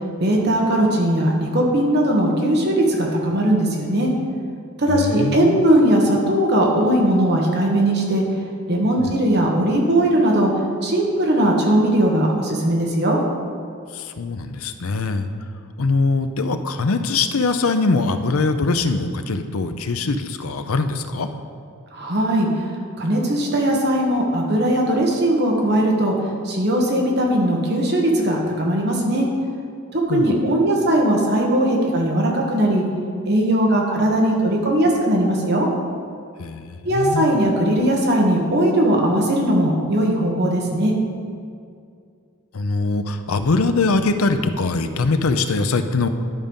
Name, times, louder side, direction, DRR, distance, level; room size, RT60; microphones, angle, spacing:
voice 1, 0.2-4.1 4.8-8.2 8.7-10.5 10.8-13.2 21.9-22.5 23.0-26.1 26.4-29.3 29.9-32.8 33.3-35.7 36.8-40.9, right 1 dB, 50° right, -1 dB, 1.4 m, -19 dB
voice 2, 4.9-5.6 9.0-9.1 13.9-15.3 15.8-21.3 30.1-30.4 36.4-37.3 42.5-46.1, left 3 dB, 85° left, 8 dB, 0.6 m, -22 dB
11.0 x 5.1 x 5.4 m, 2.3 s
head